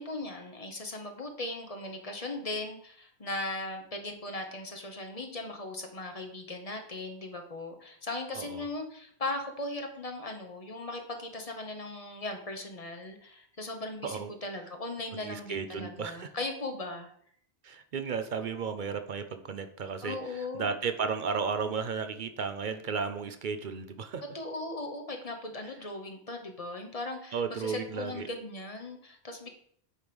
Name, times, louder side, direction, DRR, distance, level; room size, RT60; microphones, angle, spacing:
voice 1, 0.0-17.1 20.0-20.7 24.3-29.5, left 2 dB, 35° left, 4 dB, 1.1 m, -38 dB
voice 2, 15.2-16.3 17.6-20.2 20.5-24.2 27.3-28.3, right 5 dB, 55° right, 9 dB, 0.7 m, -34 dB
8.6 x 3.2 x 5.2 m, 0.63 s
omnidirectional pair, 1.1 m